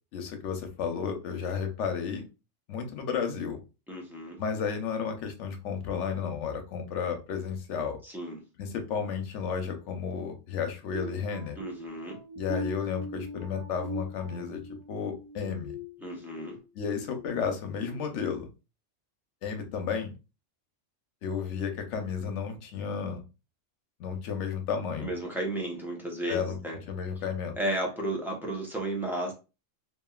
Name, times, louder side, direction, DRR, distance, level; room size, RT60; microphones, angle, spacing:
voice 1, 0.1-2.2 2.7-3.6 4.4-8.0 8.6-11.6 12.4-14.6 14.9-15.7 16.7-18.5 19.4-20.1 21.2-23.2 24.0-25.1 26.3-26.6 26.9-27.6, left 6 dB, 70° left, 6 dB, 0.9 m, -32 dB
voice 2, 3.9-4.4 8.0-8.4 11.6-12.2 16.0-16.6 25.0-26.8 27.6-29.3, right 1 dB, ahead, -2 dB, 0.5 m, -33 dB
sound 1, 10.9-16.6 17.0-17.3 17.8-18.0, right 1 dB, 75° right, 1.2 m, -41 dB
2.8 x 2.6 x 2.3 m, 0.30 s
omnidirectional pair, 1.3 m